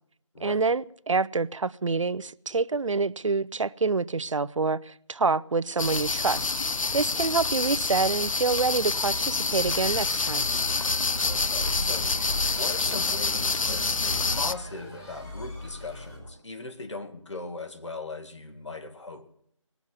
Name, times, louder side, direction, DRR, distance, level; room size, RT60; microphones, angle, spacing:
voice 1, 0.4-10.5, right 4 dB, 70° right, 0.5 m, -27 dB
sound 1, 5.8-14.5, left 4 dB, 80° left, 0.6 m, -27 dB
sound 2, 9.6-16.3, left 1 dB, 10° left, 2.9 m, -37 dB
voice 2, 11.2-12.2 12.5-19.3, left 3 dB, 60° left, 2.1 m, -39 dB
19.5 x 7.1 x 9.4 m
figure-of-eight pair, 170°, 17 cm